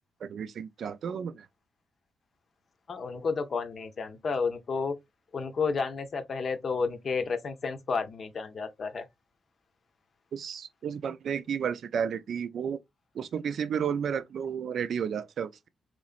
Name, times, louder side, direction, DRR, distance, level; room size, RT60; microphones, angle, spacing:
voice 1, 0.2-1.5 10.3-12.8 13.1-15.7, right 7 dB, 65° right, 0.4 m, -32 dB
voice 2, 2.9-4.9 5.3-9.0, left 5 dB, 50° left, 0.6 m, -31 dB
3.9 x 3.1 x 2.4 m
cardioid pair, 100°, 0 cm